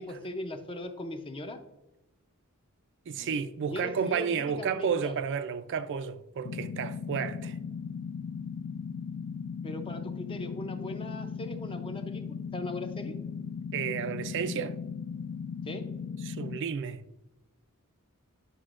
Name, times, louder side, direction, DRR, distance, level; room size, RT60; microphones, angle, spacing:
voice 1, 0.0-1.6 3.2-5.1 9.6-13.2 15.6-15.9, left 1 dB, 25° left, 0.5 m, -39 dB
voice 2, 3.1-7.6 13.7-14.7 16.2-17.0, right 6 dB, 55° right, 0.4 m, -31 dB
sound 1, 6.4-16.6, left 6 dB, 85° left, 0.3 m, -37 dB
9.7 x 5.8 x 2.4 m
head